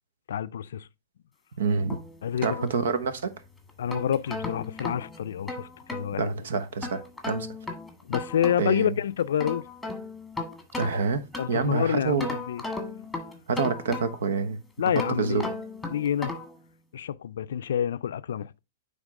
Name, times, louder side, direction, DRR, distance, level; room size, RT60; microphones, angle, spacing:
voice 1, 0.3-0.9 2.2-2.6 3.8-6.3 8.0-9.6 11.4-12.6 14.8-15.5 15.9-16.3 16.9-18.6, left 9 dB, 80° left, 0.4 m, -28 dB
voice 2, 1.6-2.0 2.4-3.3 6.2-7.0 7.3-7.5 8.6-8.9 10.8-11.2 11.5-12.3 13.5-14.6 15.2-15.4, right 5 dB, 80° right, 1.0 m, -27 dB
sound 1, 1.9-3.2 3.7-6.1 6.8-8.8 9.2-11.7 12.2-14.4 14.9-16.6, left 2 dB, 5° left, 1.5 m, -36 dB
9.0 x 3.5 x 3.6 m
hypercardioid pair, 140°, 0 cm